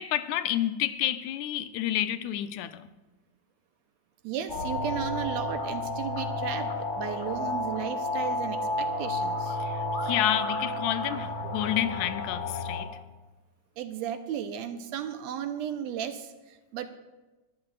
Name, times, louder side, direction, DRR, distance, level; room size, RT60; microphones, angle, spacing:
voice 1, 0.0-2.9 9.6-12.9, left 12 dB, 85° left, 2.0 m, -29 dB
voice 2, 4.2-9.6 13.8-16.9, right 9 dB, 75° right, 1.9 m, -35 dB
sound 1, 4.5-12.8, left 2 dB, 30° left, 1.7 m, -31 dB
22.5 x 13.0 x 2.4 m
omnidirectional pair, 3.3 m